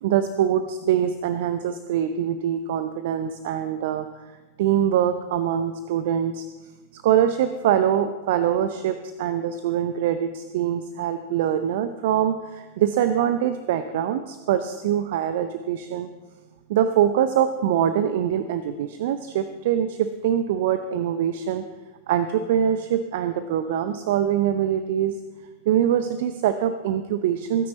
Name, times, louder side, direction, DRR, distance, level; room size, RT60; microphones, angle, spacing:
voice 1, 0.0-4.1 4.6-6.5 6.9-16.1 16.7-21.6 22.1-25.1 25.7-27.7, right 10 dB, 55° right, 10 dB, 0.7 m, -23 dB
22.0 x 9.6 x 4.1 m, 1.3 s
figure-of-eight pair, 90°, 0 cm